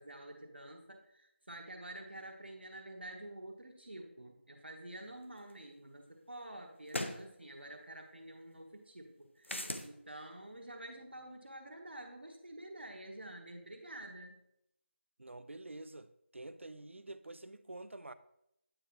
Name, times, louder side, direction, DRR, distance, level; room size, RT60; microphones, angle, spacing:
voice 1, 0.0-14.4, right 1 dB, 55° right, 1.0 m, -49 dB
sound 1, 5.5-5.6 6.9-7.2 9.4-9.9, left 1 dB, 70° left, 0.8 m, -37 dB
voice 2, 15.2-18.1, right 2 dB, 75° right, 0.4 m, -48 dB
9.0 x 4.5 x 2.9 m
figure-of-eight pair, 180°, 7 cm